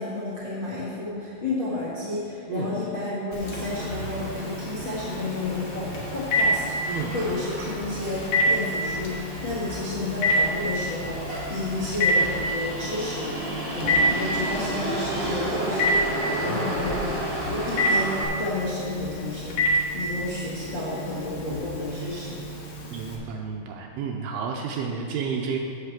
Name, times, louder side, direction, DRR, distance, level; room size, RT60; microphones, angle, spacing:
voice 1, 0.0-13.3 13.7-22.4, left 2 dB, 45° left, -9 dB, 1.5 m, -31 dB
Telephone, 3.3-23.2, equal, 60° left, 1.8 m, -29 dB
Motor vehicle (road), 3.4-18.2, right 1 dB, 20° right, 1.9 m, -33 dB
voice 2, 16.4-16.7 22.9-25.6, right 6 dB, 80° right, 1 dB, 2.4 m, -31 dB
8.2 x 6.5 x 7.4 m, 2.7 s
omnidirectional pair, 4.9 m